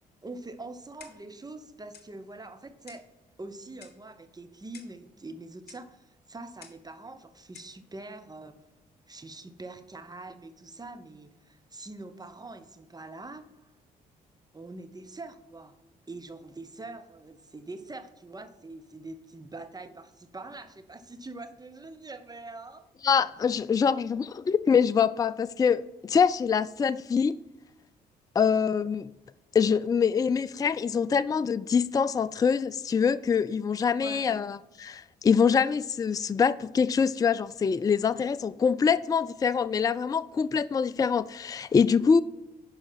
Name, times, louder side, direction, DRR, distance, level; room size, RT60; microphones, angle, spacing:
voice 1, 0.2-3.0 3.4-8.7 9.1-13.7 14.5-15.7 16.1-22.9 34.0-34.5, right 2 dB, 20° right, 1.0 m, -44 dB
Clock, 1.0-1.4 1.9-2.1 2.9-3.1 3.8-4.1 4.7-5.0 5.7-5.9 6.6-6.9 7.5-7.8, left 8 dB, 50° left, 1.2 m, -51 dB
voice 2, 23.0-27.4 28.4-29.1 29.5-42.2, left 6 dB, 20° left, 0.3 m, -24 dB
11.5 x 4.8 x 4.2 m
figure-of-eight pair, 45°, 21 cm